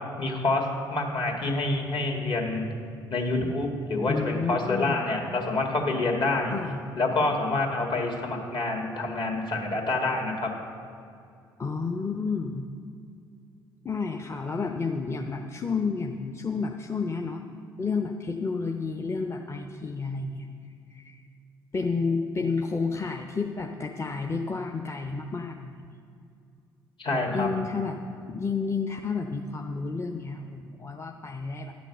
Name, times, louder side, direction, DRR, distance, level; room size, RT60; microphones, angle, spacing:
voice 1, 0.2-0.6 0.9-2.7 3.1-6.5 7.0-10.5 27.0-27.5, left 2 dB, 45° left, 1 dB, 2.0 m, -27 dB
voice 2, 4.1-5.0 6.5-6.8 11.6-12.7 13.8-17.4 17.8-20.5 20.9-21.2 21.7-25.8 27.3-28.0 28.3-31.7, left 4 dB, 25° left, 3 dB, 0.7 m, -30 dB
11.5 x 6.2 x 6.7 m, 2.5 s
figure-of-eight pair, 50°, 11 cm